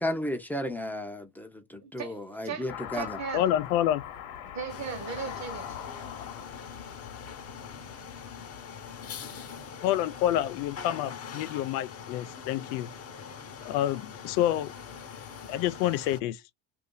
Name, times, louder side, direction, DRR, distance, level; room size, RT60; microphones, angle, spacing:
voice 1, 0.0-3.2, left 1 dB, 5° left, 0.6 m, -33 dB
voice 2, 1.8-3.5 4.5-5.8, right 6 dB, 35° right, 1.0 m, -38 dB
Car passing by / Accelerating revving vroom, 2.7-9.3, left 10 dB, 65° left, 1.1 m, -43 dB
voice 3, 3.3-4.0 9.8-12.9 13.6-14.7 15.5-16.4, left 12 dB, 85° left, 0.6 m, -28 dB
sound 1, 4.7-16.2, left 6 dB, 30° left, 0.8 m, -43 dB
2.6 x 2.6 x 3.7 m
supercardioid pair, 105°, 47 cm